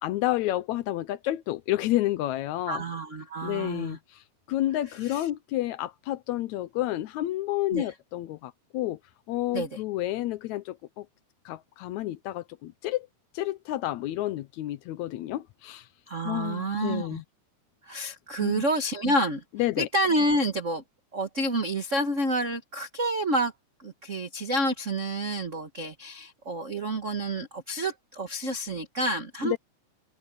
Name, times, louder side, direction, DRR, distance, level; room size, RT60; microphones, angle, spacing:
voice 1, 0.0-2.8 3.4-4.2 4.5-9.0 9.3-11.1 11.5-13.1 13.3-15.9 16.2-17.2 18.4-18.6 19.5-19.9 29.4-29.6, left 15 dB, 80° left, 1.9 m, -30 dB
voice 2, 2.7-4.0 5.0-5.2 7.7-7.9 9.5-9.8 16.1-17.2 17.8-19.4 19.8-20.8 21.1-23.5 23.8-29.6, right 1 dB, 60° right, 0.7 m, -29 dB
open air
omnidirectional pair, 3.6 m